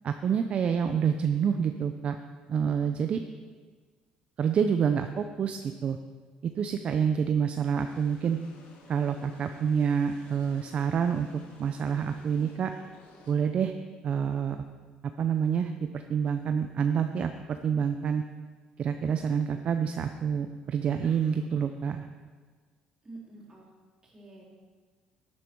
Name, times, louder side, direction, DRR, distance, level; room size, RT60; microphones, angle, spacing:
voice 1, 0.0-2.2 2.5-3.2 4.4-6.0 6.4-8.4 8.9-11.3 11.6-12.7 13.3-13.7 14.0-14.6 15.2-18.2 18.8-22.0, right 7 dB, 50° right, 7 dB, 0.5 m, -27 dB
sound 1, 7.7-13.4, left 3 dB, 75° left, 1.8 m, -55 dB
voice 2, 23.0-23.7 24.0-24.4, right 2 dB, 25° right, -4 dB, 3.8 m, -48 dB
11.5 x 8.8 x 4.6 m, 1.5 s
cardioid pair, 100°, 3 cm